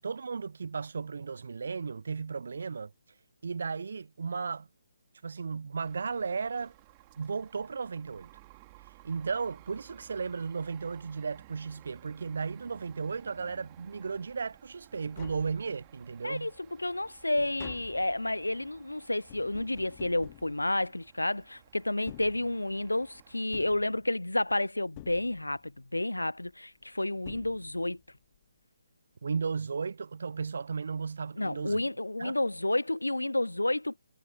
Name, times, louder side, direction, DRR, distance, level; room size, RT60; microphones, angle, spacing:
voice 1, 0.0-2.9 3.4-4.7 5.2-6.7 7.2-8.3 9.0-16.5 29.2-31.8 32.2-32.4, right 5 dB, 60° right, 0.5 m, -35 dB
sound 1, 5.8-23.4, right 22 dB, 25° right, 2.3 m, -57 dB
Tap, 14.7-14.8 15.0-16.1 16.5-21.3 21.9-23.0 23.5-24.5 25.0-25.8 26.8-26.9 27.2-28.1 28.3-28.4, left 20 dB, 25° left, 1.8 m, -51 dB
voice 2, 16.2-28.0 31.4-34.0, left 1 dB, 90° left, 0.3 m, -30 dB
figure-of-eight pair, 145°, 0 cm